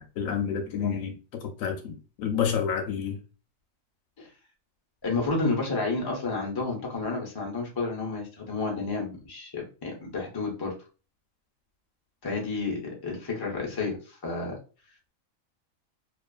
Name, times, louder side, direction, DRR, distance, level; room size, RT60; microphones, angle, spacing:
voice 1, 0.0-3.2, left 7 dB, 75° left, 1.0 m, -29 dB
voice 2, 5.0-10.7 12.2-14.6, left 3 dB, 30° left, 0.4 m, -31 dB
2.4 x 2.4 x 2.3 m
omnidirectional pair, 1.5 m